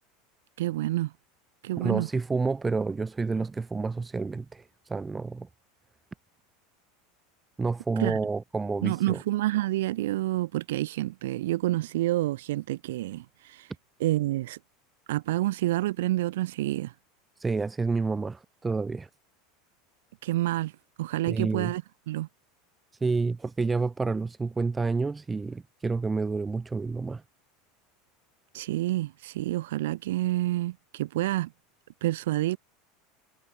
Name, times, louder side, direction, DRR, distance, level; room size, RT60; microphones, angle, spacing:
voice 1, 0.6-1.1 1.6-2.1 8.0-8.2 8.8-13.7 14.0-14.6 15.1-16.9 20.2-20.7 21.0-22.3 28.5-31.5 32.0-32.6, right 16 dB, 90° right, 1.9 m, -28 dB
voice 2, 1.8-5.5 7.6-9.2 17.4-19.1 21.3-21.7 23.0-27.2, right 4 dB, 10° right, 0.8 m, -29 dB
supercardioid pair, 165°, 0 cm